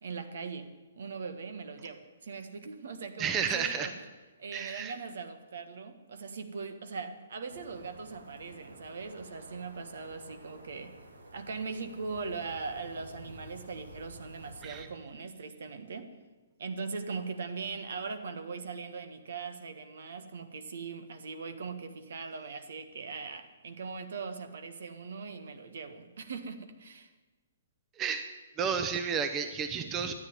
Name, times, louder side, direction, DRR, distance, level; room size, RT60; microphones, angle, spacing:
voice 1, 0.0-4.0 4.4-10.9 11.3-16.1 16.6-27.1, right 4 dB, 60° right, 9 dB, 1.5 m, -40 dB
voice 2, 3.2-3.9 4.5-4.9 14.6-14.9 28.0-28.3 28.6-30.1, right 6 dB, 20° right, 8 dB, 1.0 m, -31 dB
sound 1, 7.5-14.8, right 1 dB, 80° right, 2.3 m, -51 dB
13.5 x 9.9 x 9.5 m, 1.2 s
figure-of-eight pair, 125°, 0 cm